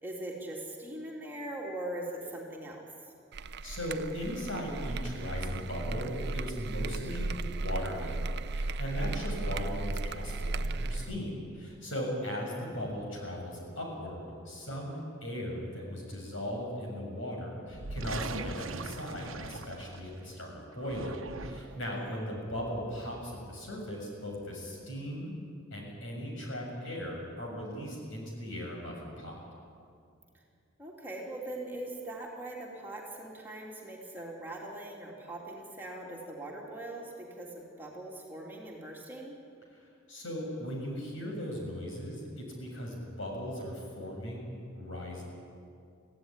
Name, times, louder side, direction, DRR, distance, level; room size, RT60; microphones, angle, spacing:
voice 1, 0.0-2.8 21.7-22.2 30.8-39.4, right 1 dB, 10° right, -2 dB, 3.1 m, -41 dB
sound 1, 3.3-11.2, right 2 dB, 55° right, 0.6 m, -35 dB
voice 2, 3.6-25.3 25.7-29.4 40.1-45.2, equal, 65° left, 0 dB, 6.8 m, -38 dB
sound 2, 17.7-20.2 20.7-21.9, right 3 dB, 80° right, 1.0 m, -40 dB
25.0 x 16.0 x 9.9 m, 2.4 s
head